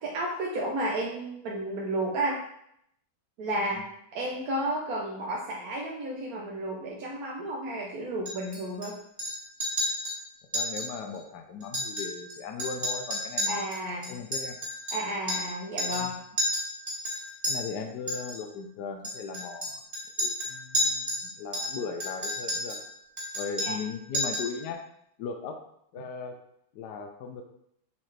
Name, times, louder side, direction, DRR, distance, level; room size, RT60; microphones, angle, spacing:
voice 1, 0.0-2.4 3.4-3.8 4.1-9.0 13.5-14.2 14.9-16.2 23.6-23.8, right 1 dB, 60° right, -3 dB, 1.2 m, -32 dB
Chink clink, 8.3-8.9 9.2-9.3 9.6-10.2 10.5-10.9 11.1-11.2 11.6-12.3 12.6-15.5 15.8-16.1 16.4-17.5 18.1-18.4 19.0-21.2 21.5-22.8 23.2-23.9 24.1-24.5, equal, 15° right, 2.0 m, -31 dB
voice 2, 10.5-13.6 14.1-14.6 15.9-16.1 17.5-19.8 20.2-22.8 23.3-24.8 25.2-25.6 25.9-26.4 26.7-27.4, left 5 dB, 65° left, 4 dB, 1.1 m, -37 dB
7.2 x 4.4 x 3.3 m, 0.73 s
omnidirectional pair, 2.2 m